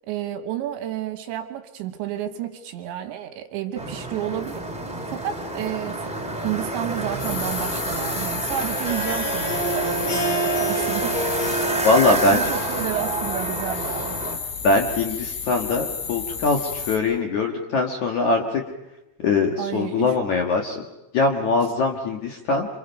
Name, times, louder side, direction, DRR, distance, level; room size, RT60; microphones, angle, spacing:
voice 1, 0.0-4.7 5.1-6.1 6.4-11.2 11.5-11.7 12.0-14.2 19.6-20.2, right 11 dB, 75° right, 7 dB, 3.3 m, -31 dB
sound 1, 3.7-14.4, right 2 dB, 10° right, 0.3 m, -29 dB
sound 2, 7.2-17.0, left 6 dB, 85° left, 5.4 m, -32 dB
Harp, 8.7-14.1, right 2 dB, 45° left, 5.4 m, -29 dB
voice 2, 11.8-12.4 14.6-18.6 19.2-20.9 21.1-22.7, left 3 dB, 65° left, 2 dB, 1.9 m, -22 dB
28.0 x 27.0 x 5.3 m, 0.94 s
omnidirectional pair, 5.7 m